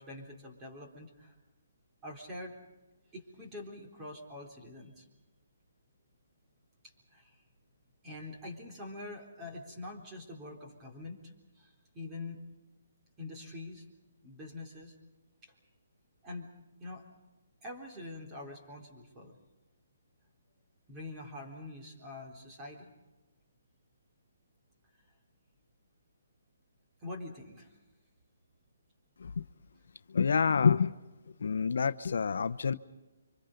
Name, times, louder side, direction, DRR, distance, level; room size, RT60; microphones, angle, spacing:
voice 1, 0.0-1.4 2.0-2.6 3.1-5.1 7.1-7.4 8.0-12.4 13.2-13.9 14.2-15.0 15.4-15.5 16.2-16.5 16.8-17.0 17.6-19.4 20.9-22.9 27.0-27.8, left 2 dB, 15° right, 0 dB, 4.0 m, -45 dB
voice 2, 30.1-31.0 31.4-32.7, left 6 dB, 70° left, 13 dB, 0.9 m, -27 dB
29.5 x 25.5 x 5.2 m, 1.1 s
hypercardioid pair, 165°, 0 cm